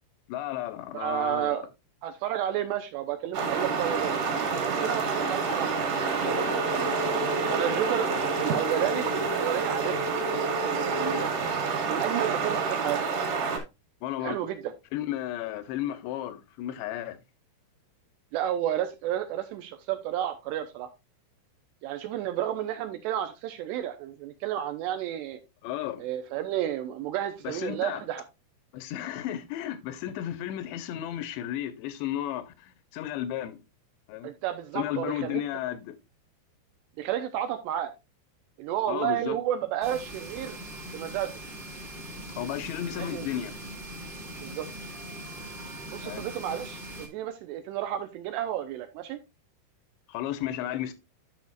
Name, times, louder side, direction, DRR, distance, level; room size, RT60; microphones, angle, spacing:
voice 1, 0.3-1.7 14.0-14.4 14.9-17.2 25.6-26.0 27.4-28.0 28.7-33.6 34.1-34.3 34.8-35.9 38.9-39.4 42.4-43.5 46.0-46.2 50.1-50.9, left 12 dB, 80° left, 2.7 m, -33 dB
voice 2, 0.9-1.7 2.0-4.1 4.7-6.9 7.5-8.1 8.4-11.2 11.9-13.0 14.2-14.7 18.3-20.9 21.8-25.4 26.0-28.2 34.2-35.4 37.0-37.9 38.6-40.6 40.9-41.4 43.0-43.3 44.4-44.7 45.9-49.2, right 11 dB, 85° right, 2.5 m, -31 dB
sound 1, 3.3-13.6, right 5 dB, 55° right, 3.7 m, -28 dB
sound 2, 6.2-11.2, left 1 dB, 65° left, 0.6 m, -34 dB
sound 3, 39.8-47.1, right 1 dB, 20° right, 1.3 m, -41 dB
10.5 x 6.4 x 2.4 m
omnidirectional pair, 5.5 m